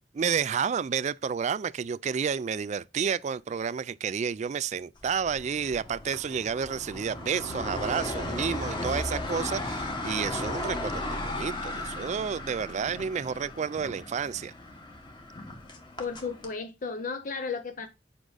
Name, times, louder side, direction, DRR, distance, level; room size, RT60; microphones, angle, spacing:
voice 1, 0.1-14.5, right 6 dB, 40° right, 0.3 m, -30 dB
sound 1, 5.0-16.5, left 1 dB, 25° left, 1.6 m, -36 dB
voice 2, 16.0-17.9, left 5 dB, 45° left, 0.6 m, -34 dB
8.1 x 5.1 x 3.9 m
head